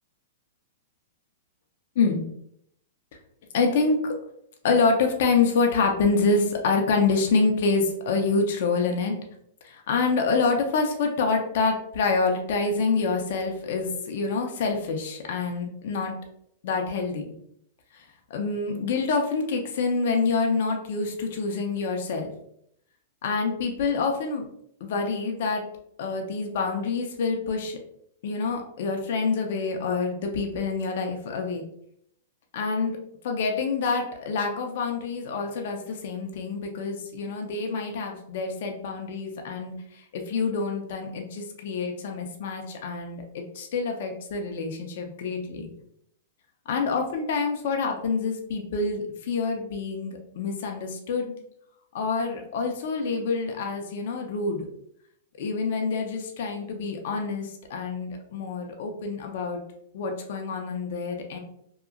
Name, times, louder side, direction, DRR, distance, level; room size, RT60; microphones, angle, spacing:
voice 1, 3.5-4.2 4.6-9.2 9.6-16.1 16.6-17.3 17.9-18.0 18.3-22.3 23.2-24.5 24.8-25.6 26.0-27.8 28.2-31.6 32.5-33.0 33.2-45.7 46.7-51.3 51.9-54.7 55.4-59.6 59.9-61.4, left 4 dB, 65° left, 3 dB, 0.6 m, -27 dB
2.8 x 2.3 x 2.4 m, 0.70 s
hypercardioid pair, 130°, 0 cm